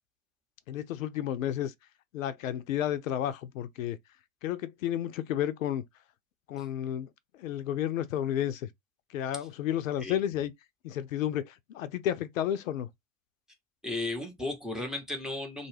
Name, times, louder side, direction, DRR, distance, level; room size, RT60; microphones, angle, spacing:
voice 1, 0.7-1.7 2.1-4.0 4.4-5.8 6.5-7.1 7.4-8.7 9.1-10.5 10.8-12.9, left 11 dB, 75° left, 0.5 m, -31 dB
voice 2, 13.8-15.7, left 2 dB, ahead, 0.6 m, -35 dB
2.3 x 2.1 x 3.1 m
hypercardioid pair, 95°, 41 cm